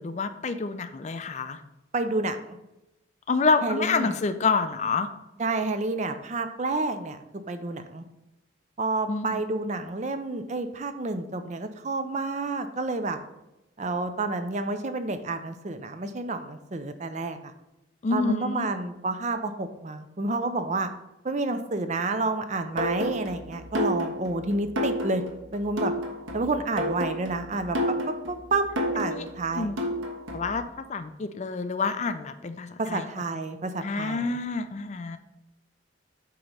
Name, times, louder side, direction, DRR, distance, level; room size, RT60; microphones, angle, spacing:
voice 1, 0.0-1.6 3.3-5.1 9.1-9.4 18.0-18.7 29.1-29.2 29.5-29.8 30.3-33.0 33.8-35.2, left 4 dB, 35° left, 9 dB, 0.4 m, -28 dB
voice 2, 1.9-2.6 3.6-4.1 5.4-7.2 7.5-8.0 8.8-13.2 13.8-17.5 18.1-20.9 21.2-25.2 25.5-25.9 26.3-27.8 28.3-28.7 29.0-29.7 32.8-34.4, right 3 dB, 35° right, 9 dB, 0.5 m, -29 dB
sound 1, 22.8-30.6, equal, 90° right, 1.3 m, -30 dB
8.4 x 3.0 x 5.5 m, 0.93 s
head